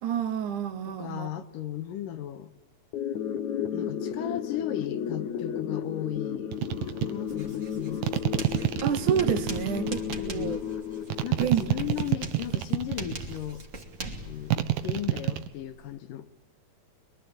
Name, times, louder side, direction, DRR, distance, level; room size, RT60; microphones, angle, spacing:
voice 1, 0.0-1.3 8.8-10.6 11.4-11.6 12.0-12.1, right 8 dB, 70° right, 2.5 m, -29 dB
voice 2, 0.9-2.5 3.7-8.1 10.1-10.6 11.2-13.6 14.3-16.3, left 11 dB, 85° left, 2.9 m, -36 dB
sound 1, 2.9-12.0, left 8 dB, 65° left, 2.4 m, -33 dB
sound 2, 6.5-7.1 8.0-10.2 11.1-13.4 14.5-15.5, right 13 dB, 85° right, 2.9 m, -27 dB
Writing, 7.3-15.9, right 2 dB, 25° right, 2.7 m, -42 dB
25.5 x 23.0 x 8.7 m
omnidirectional pair, 3.8 m